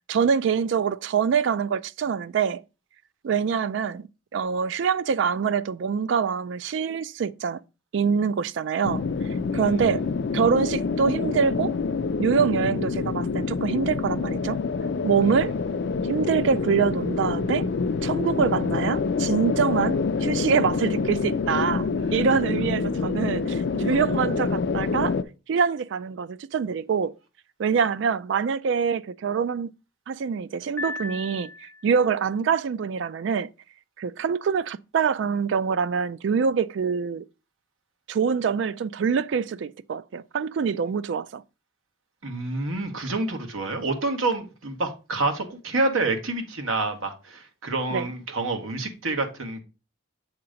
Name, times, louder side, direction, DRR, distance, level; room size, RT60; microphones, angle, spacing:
voice 1, 0.1-2.6 3.2-7.6 7.9-9.0 9.5-10.1 10.3-11.7 12.2-14.6 15.0-15.6 16.1-17.7 18.0-25.2 25.5-27.1 27.6-29.7 30.1-33.5 34.0-37.2 38.1-41.4 47.9-48.1, right 6 dB, 60° right, 0.3 m, -25 dB
sound 1, 8.8-25.2, left 4 dB, 60° left, 0.4 m, -27 dB
Piano, 30.8-32.1, left 3 dB, 10° left, 0.6 m, -36 dB
voice 2, 42.2-49.6, right 2 dB, 85° right, 1.2 m, -28 dB
7.6 x 2.9 x 5.0 m
head